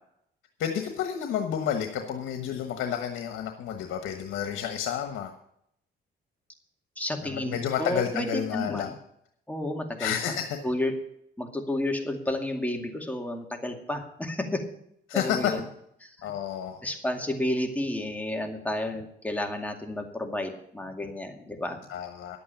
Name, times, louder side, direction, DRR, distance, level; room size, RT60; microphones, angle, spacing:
voice 1, 0.6-5.3 7.2-8.9 10.0-10.6 15.1-15.5 16.2-16.8 21.9-22.4, left 9 dB, 85° left, 5 dB, 1.3 m, -30 dB
voice 2, 7.0-8.9 9.5-10.1 10.6-10.9 11.4-14.6 15.1-15.7 16.0-16.3 16.8-21.8, left 1 dB, 5° left, 3 dB, 2.3 m, -31 dB
11.0 x 8.6 x 7.0 m, 0.73 s
cardioid pair, 90°, 20 cm